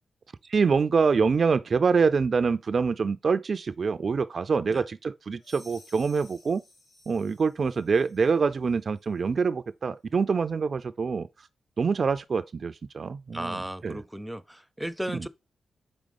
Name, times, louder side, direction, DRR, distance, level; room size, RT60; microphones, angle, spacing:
voice 1, 0.5-6.6 7.1-11.3 11.8-14.0 15.1-15.3, right 5 dB, 55° right, 0.3 m, -25 dB
sound 1, 5.4-8.4, left 1 dB, 85° left, 2.9 m, -55 dB
voice 2, 13.3-15.3, right 1 dB, 5° right, 0.6 m, -35 dB
5.1 x 3.5 x 5.2 m
cardioid pair, 55°, 0 cm